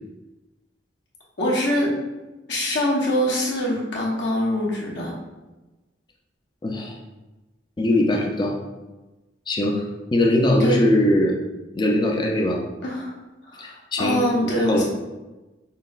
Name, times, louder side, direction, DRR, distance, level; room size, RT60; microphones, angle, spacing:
voice 1, 1.4-1.9 2.5-5.1 10.6-10.8 12.8-13.1 13.5-14.8, equal, 65° left, -4 dB, 0.9 m, -24 dB
voice 2, 6.6-7.0 7.8-8.6 9.5-9.8 10.1-11.3 11.7-12.6 13.6-14.2 14.5-14.8, left 1 dB, 25° left, 1 dB, 0.4 m, -21 dB
5.6 x 2.1 x 2.4 m, 1.1 s
head